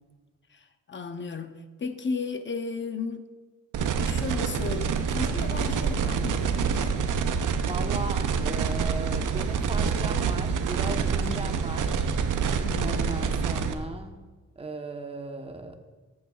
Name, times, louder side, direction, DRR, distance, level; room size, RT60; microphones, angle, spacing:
voice 1, 0.5-3.3 4.0-7.1 11.2-11.5 12.6-13.2, left 4 dB, 40° left, 8 dB, 0.8 m, -35 dB
sound 1, 3.7-13.7, right 6 dB, 85° right, 0.7 m, -27 dB
voice 2, 7.6-12.1 12.8-14.2 14.6-15.7, right 2 dB, 20° right, 5 dB, 1.0 m, -37 dB
13.5 x 8.7 x 2.4 m, 1.3 s
cardioid pair, 95°, 30 cm